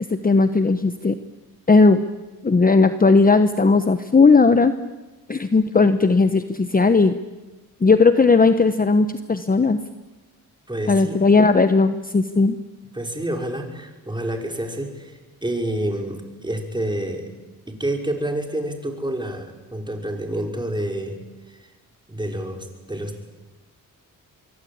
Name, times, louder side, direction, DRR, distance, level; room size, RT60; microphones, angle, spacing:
voice 1, 0.1-1.1 1.7-2.0 2.4-4.7 5.3-7.1 7.8-9.8 10.9-12.6, left 4 dB, 25° left, 10 dB, 1.1 m, -16 dB
voice 2, 10.7-11.2 12.9-17.2 17.7-21.2 21.5-21.6 22.1-23.3, right 1 dB, 15° right, 3 dB, 5.4 m, -28 dB
25.5 x 23.0 x 8.8 m, 1.2 s
cardioid pair, 85°, 35 cm